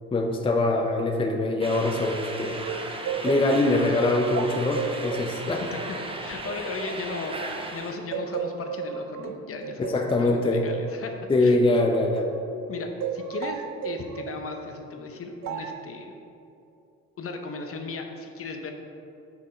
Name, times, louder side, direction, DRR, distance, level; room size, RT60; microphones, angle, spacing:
voice 1, 0.1-2.6 3.2-5.6 9.8-10.6 11.3-12.3, left 2 dB, 20° left, 3 dB, 0.5 m, -23 dB
sound 1, 1.6-8.0, right 2 dB, 20° right, 0.7 m, -36 dB
sound 2, 2.7-7.7 8.1-12.5 13.0-14.4 15.4-15.9, right 8 dB, 65° right, 0.4 m, -35 dB
voice 2, 5.4-5.8 6.2-11.1 11.4-11.6 12.7-16.2 17.2-18.7, left 3 dB, 50° left, 4 dB, 0.8 m, -36 dB
6.1 x 5.9 x 4.3 m, 2.8 s
cardioid pair, 90°, 30 cm